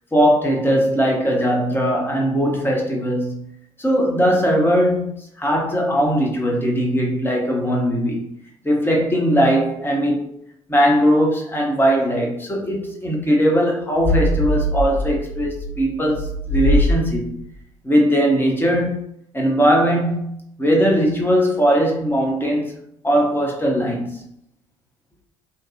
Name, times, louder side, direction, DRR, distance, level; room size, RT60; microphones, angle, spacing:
voice 1, 0.1-3.4 3.8-8.3 8.6-10.3 10.7-17.4 17.8-19.0 19.3-20.3 20.6-22.7 23.0-24.2, equal, 15° left, 0.8 m, -19 dB
sound 1, 14.0-17.4, equal, 35° left, 1.1 m, -22 dB
2.6 x 2.2 x 2.6 m
figure-of-eight pair, 45°, 15 cm